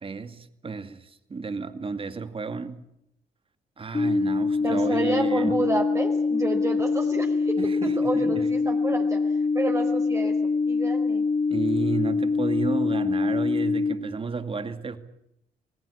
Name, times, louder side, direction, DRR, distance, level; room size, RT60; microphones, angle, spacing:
voice 1, 0.0-2.8 3.8-5.6 7.6-8.5 11.5-15.0, right 4 dB, 35° right, 2.3 m, -32 dB
sound 1, 3.9-13.9, left 4 dB, 25° left, 2.0 m, -24 dB
voice 2, 4.6-7.5 7.8-9.2 9.5-10.3 10.7-11.2, right 2 dB, 20° right, 4.7 m, -29 dB
26.5 x 18.5 x 8.6 m
cardioid pair, 85°, 17 cm